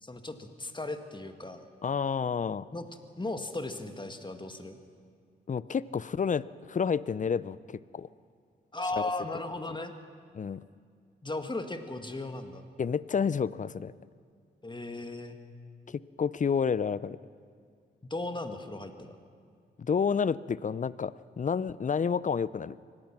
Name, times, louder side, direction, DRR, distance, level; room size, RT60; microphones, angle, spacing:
voice 1, 0.0-1.7 2.7-2.9 3.2-4.8 8.7-9.9 11.2-12.6 14.6-15.4 18.0-19.2, left 2 dB, 25° left, 7 dB, 2.0 m, -36 dB
voice 2, 1.8-2.6 5.5-8.1 9.0-9.1 10.3-10.6 12.8-13.9 15.9-17.2 19.8-22.8, left 6 dB, 40° left, 19 dB, 0.6 m, -30 dB
24.0 x 17.5 x 6.1 m, 2.2 s
supercardioid pair, 50°, 20 cm